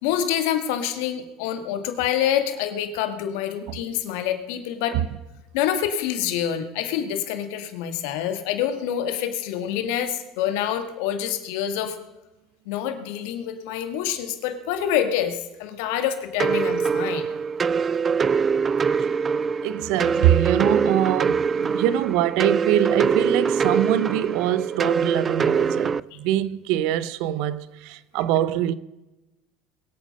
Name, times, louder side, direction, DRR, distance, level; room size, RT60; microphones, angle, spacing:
voice 1, 0.0-5.0 5.5-12.0 12.6-17.3, left 10 dB, 75° left, 1.8 m, -26 dB
sound 1, 16.4-26.0, right 6 dB, 30° right, 0.4 m, -23 dB
voice 2, 19.6-28.7, right 12 dB, 70° right, 0.7 m, -23 dB
22.0 x 8.7 x 5.3 m
hypercardioid pair, 85°, 0 cm